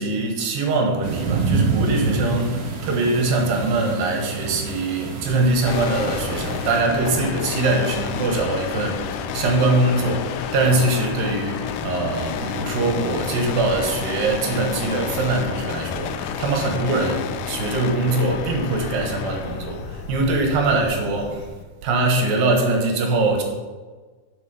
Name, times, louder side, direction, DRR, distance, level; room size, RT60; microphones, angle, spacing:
voice 1, 0.0-21.5 21.8-23.4, right 2 dB, 75° right, 2 dB, 3.0 m, -22 dB
sound 1, 1.0-6.8, right 4 dB, 55° right, 2.7 m, -27 dB
sound 2, 5.3-21.5, left 3 dB, 70° left, 2.4 m, -39 dB
sound 3, 5.7-21.6, left 8 dB, 85° left, 1.8 m, -31 dB
8.1 x 7.3 x 5.6 m, 1.4 s
omnidirectional pair, 4.2 m